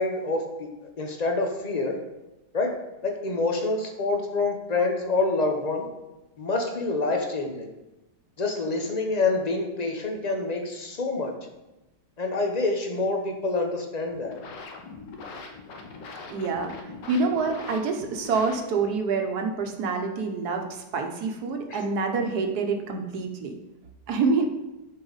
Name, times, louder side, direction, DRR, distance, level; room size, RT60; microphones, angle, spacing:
voice 1, 0.0-2.0 2.5-2.7 3.0-5.9 6.4-7.7 8.4-11.3 12.2-14.4 21.7-21.8, left 3 dB, 35° left, 3 dB, 0.7 m, -27 dB
sound 1, 14.1-19.0, left 4 dB, 75° left, 1.6 m, -42 dB
voice 2, 16.3-16.7 17.1-23.6 24.1-24.5, right 4 dB, 65° right, 4 dB, 1.4 m, -27 dB
11.0 x 4.7 x 4.0 m, 0.98 s
omnidirectional pair, 1.9 m